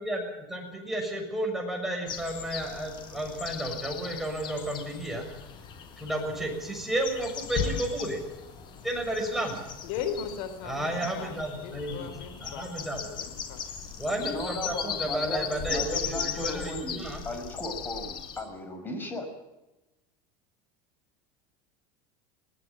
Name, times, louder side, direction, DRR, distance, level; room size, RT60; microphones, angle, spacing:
voice 1, 0.0-5.2 6.0-8.2 8.8-9.6 10.6-12.1 12.4-13.1 14.0-17.2, right 1 dB, ahead, 1 dB, 6.6 m, -32 dB
sound 1, 2.1-18.4, left 7 dB, 40° left, 4.5 m, -38 dB
voice 2, 9.8-12.7 13.1-13.7, left 7 dB, 70° left, 10 dB, 3.7 m, -37 dB
voice 3, 14.2-19.3, left 1 dB, 15° left, 6 dB, 5.3 m, -36 dB
20.5 x 18.5 x 7.3 m, 1.0 s
supercardioid pair, 140°, 12 cm